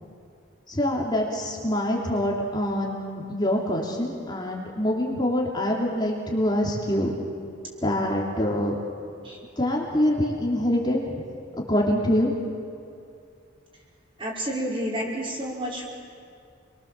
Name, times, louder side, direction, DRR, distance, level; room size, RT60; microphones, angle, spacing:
voice 1, 0.7-7.1 7.8-8.8 9.6-11.2 11.6-12.3, left 1 dB, 20° left, -2 dB, 2.9 m, -25 dB
voice 2, 14.2-15.9, equal, 25° right, -3 dB, 5.0 m, -30 dB
28.0 x 23.0 x 7.4 m, 2.5 s
head